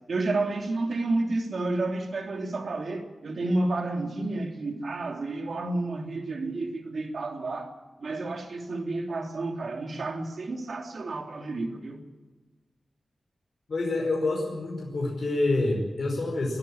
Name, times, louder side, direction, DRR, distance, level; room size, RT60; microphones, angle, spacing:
voice 1, 0.1-7.7 8.0-12.0, right 2 dB, 65° right, 3.0 m, -30 dB
voice 2, 13.7-16.6, left 2 dB, 55° left, 5.2 m, -27 dB
22.5 x 13.0 x 8.8 m
wide cardioid pair, 145°, 0 cm